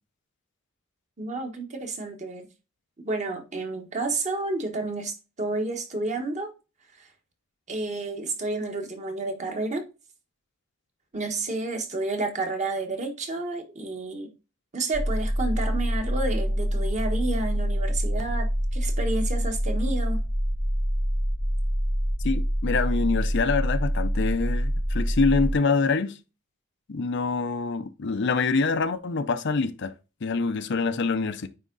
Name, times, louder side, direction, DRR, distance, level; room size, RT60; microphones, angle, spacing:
voice 1, 1.2-2.4 3.0-6.5 7.0-7.1 7.7-9.8 11.1-14.3 14.7-20.2, right 2 dB, 35° right, 1.4 m, -30 dB
sound 1, 14.9-25.5, equal, 5° left, 0.5 m, -26 dB
voice 2, 22.2-26.2 26.9-29.9 30.2-31.5, left 4 dB, 55° left, 0.6 m, -25 dB
9.3 x 3.6 x 3.8 m
head